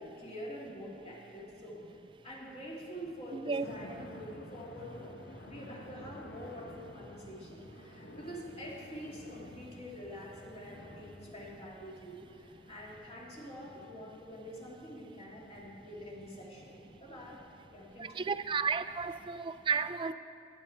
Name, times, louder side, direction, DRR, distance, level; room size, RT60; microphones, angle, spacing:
voice 1, 0.0-1.8 2.2-17.4 17.7-18.3, equal, 35° left, -4 dB, 2.2 m, -46 dB
voice 2, 3.3-3.7 18.0-20.1, right 5 dB, 30° right, 12 dB, 0.3 m, -33 dB
sound 1, 3.6-19.3, left 1 dB, 65° left, 0.9 m, -52 dB
14.0 x 10.5 x 4.5 m, 2.9 s
head